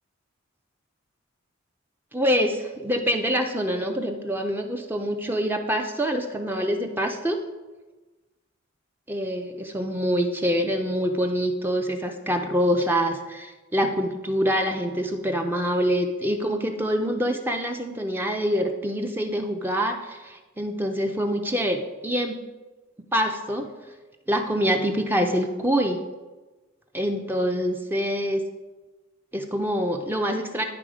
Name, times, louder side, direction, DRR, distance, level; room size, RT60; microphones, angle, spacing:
voice 1, 2.1-7.4 9.1-22.4 23.1-23.7 24.3-26.0 26.9-28.4 29.3-30.6, equal, 10° right, 3 dB, 0.5 m, -25 dB
10.5 x 3.9 x 5.0 m, 1.2 s
head